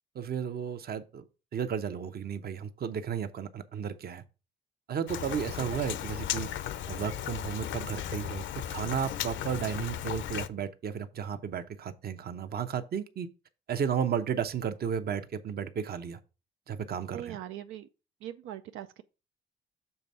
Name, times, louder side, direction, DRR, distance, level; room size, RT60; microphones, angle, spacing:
voice 1, 0.1-1.2 1.5-4.2 4.9-6.5 6.9-8.4 8.7-13.3 13.7-16.2 16.7-17.4, right 8 dB, 50° right, 0.8 m, -33 dB
Rain, 5.1-10.5, left 11 dB, 70° left, 0.6 m, -36 dB
voice 2, 17.1-17.9 18.2-19.0, right 11 dB, 90° right, 0.5 m, -41 dB
6.9 x 3.4 x 5.4 m
cardioid pair, 90°, 20 cm